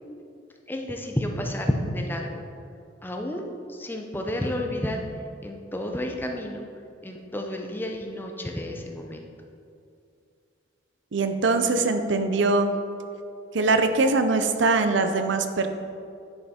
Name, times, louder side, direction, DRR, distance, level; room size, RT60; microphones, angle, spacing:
voice 1, 0.7-2.4 3.0-5.0 5.4-6.6 7.0-9.2, left 1 dB, 10° left, 2 dB, 0.6 m, -30 dB
voice 2, 11.1-12.7 13.5-15.7, right 3 dB, 70° right, 8 dB, 0.6 m, -22 dB
9.8 x 5.6 x 4.3 m, 2.5 s
head